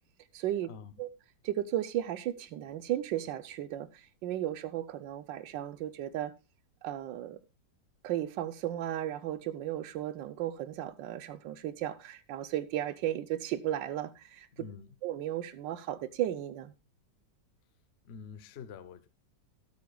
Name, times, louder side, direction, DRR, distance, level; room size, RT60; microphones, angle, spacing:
voice 1, 0.3-0.7 1.0-1.1 1.4-6.3 6.8-7.4 8.0-14.5 15.0-16.7, right 12 dB, 85° right, 1.4 m, -35 dB
voice 2, 14.5-14.9 18.0-19.1, left 6 dB, 50° left, 0.8 m, -46 dB
17.0 x 8.5 x 2.3 m
omnidirectional pair, 1.9 m